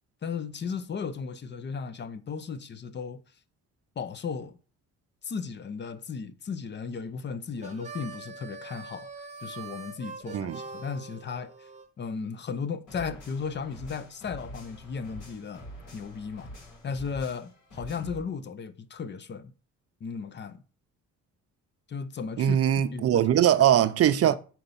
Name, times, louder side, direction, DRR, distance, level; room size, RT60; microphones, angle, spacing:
voice 1, 0.2-3.2 4.0-4.6 5.2-9.1 9.4-11.7 12.0-16.5 16.8-19.5 20.0-20.6 21.9-22.6 22.9-23.5 24.2-24.4, left 5 dB, 35° left, 0.6 m, -35 dB
Harmonica, 7.6-11.9, right 4 dB, 25° right, 0.9 m, -43 dB
sound 1, 12.9-18.2, equal, 80° left, 3.2 m, -45 dB
voice 2, 22.4-24.4, right 10 dB, 50° right, 0.5 m, -21 dB
4.5 x 4.0 x 5.5 m
cardioid pair, 90°, 30 cm